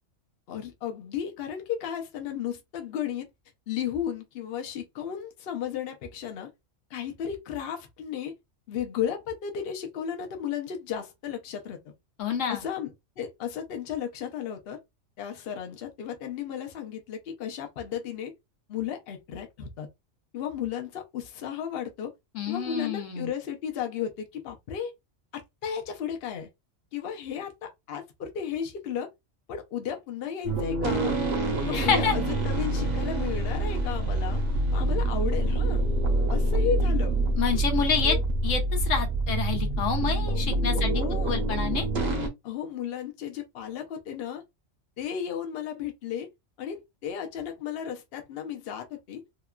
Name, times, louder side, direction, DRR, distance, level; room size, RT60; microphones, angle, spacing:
voice 1, 0.5-3.3 3.7-6.5 6.9-8.3 8.7-11.9 12.5-14.8 15.2-18.3 18.7-19.9 20.3-22.1 22.5-24.9 25.3-26.5 26.9-29.1 29.5-31.2 31.6-34.4 34.7-35.8 36.3-37.2 38.0-38.2 40.3-40.4 40.7-41.5 42.4-44.4 45.0-46.3 46.6-49.2, left 8 dB, 55° left, 0.8 m, -34 dB
voice 2, 12.2-12.6 22.3-23.3 31.7-32.2 37.4-38.2 38.4-40.9 41.2-41.9, left 6 dB, 80° left, 1.1 m, -28 dB
sound 1, 30.4-42.3, right 2 dB, 50° right, 0.8 m, -26 dB
2.9 x 2.3 x 2.3 m
omnidirectional pair, 1.3 m